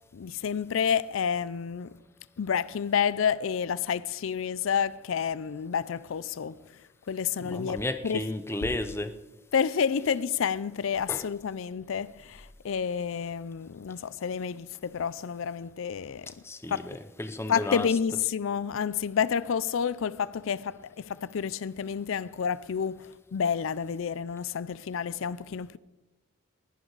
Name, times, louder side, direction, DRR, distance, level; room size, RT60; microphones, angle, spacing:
voice 1, 0.1-1.9 2.4-6.6 7.1-7.8 8.0-8.3 9.5-16.3 16.7-17.0 17.5-25.8, left 7 dB, 80° left, 0.4 m, -29 dB
voice 2, 7.4-9.1 11.1-11.2 16.4-17.9, left 1 dB, 10° left, 0.6 m, -33 dB
20.0 x 11.0 x 4.0 m
head